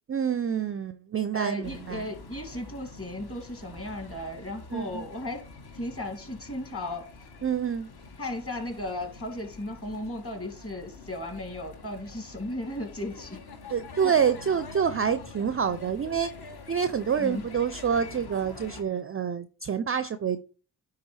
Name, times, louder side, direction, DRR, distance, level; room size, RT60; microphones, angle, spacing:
voice 1, 0.1-2.1 4.7-5.1 7.4-7.9 13.7-16.3 16.7-20.4, right 7 dB, 30° right, 13 dB, 0.4 m, -27 dB
voice 2, 1.3-5.4 5.7-7.1 8.2-13.4 17.2-17.4, left 1 dB, 25° left, 3 dB, 2.3 m, -35 dB
sound 1, 1.6-18.8, left 4 dB, 50° left, 1.2 m, -46 dB
9.4 x 3.6 x 3.2 m, 0.39 s
supercardioid pair, 40°, 50 cm